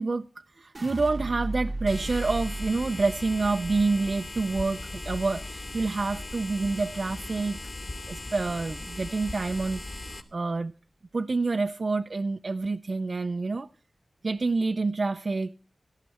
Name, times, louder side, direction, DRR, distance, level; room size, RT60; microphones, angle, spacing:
voice 1, 0.0-7.6 8.1-10.7 11.1-13.7 14.2-15.5, right 3 dB, 50° right, 0.6 m, -28 dB
sound 1, 0.7-6.9 7.3-7.9, right 2 dB, 30° right, 1.0 m, -37 dB
sound 2, 1.9-10.2, left 2 dB, 40° left, 2.9 m, -38 dB
17.5 x 13.0 x 4.4 m
wide cardioid pair, 85°, 0 cm